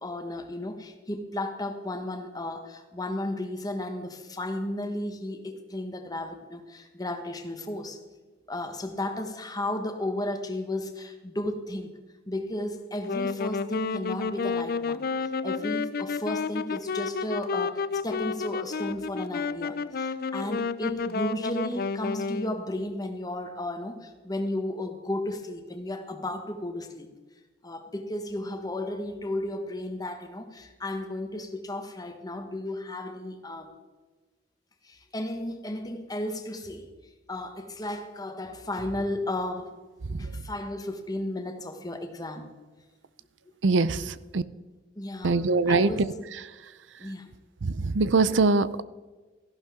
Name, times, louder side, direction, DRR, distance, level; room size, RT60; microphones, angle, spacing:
voice 1, 0.0-8.0 8.5-11.9 12.3-27.1 27.6-33.7 34.8-36.9 37.3-39.8 40.2-42.5 44.9-45.4 45.6-46.1 47.0-47.3, left 1 dB, 20° left, 6 dB, 1.3 m, -34 dB
Wind instrument woodwind instrument, 12.9-22.6, left 4 dB, 55° left, 0.5 m, -31 dB
voice 2, 43.6-44.4 45.2-46.0 47.6-48.8, right 3 dB, 85° right, 16 dB, 0.6 m, -23 dB
15.0 x 11.5 x 3.7 m, 1.3 s
head